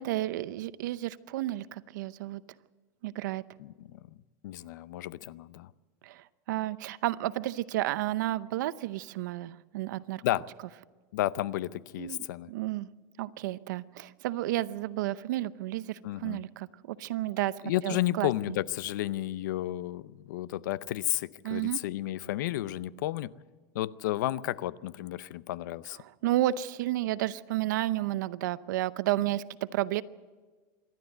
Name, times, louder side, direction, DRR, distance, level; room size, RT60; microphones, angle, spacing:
voice 1, 0.0-2.4 3.0-3.4 6.0-10.2 12.0-12.2 12.5-12.9 13.2-17.6 17.8-18.3 21.4-21.8 26.0-30.0, right 15 dB, 85° right, 16 dB, 0.7 m, -31 dB
voice 2, 3.6-4.0 4.4-5.7 10.2-10.5 11.1-12.5 16.0-16.4 17.6-23.3 23.7-26.0, left 14 dB, 90° left, 18 dB, 0.6 m, -32 dB
26.5 x 12.5 x 7.9 m, 1.4 s
supercardioid pair, 140°, 10 cm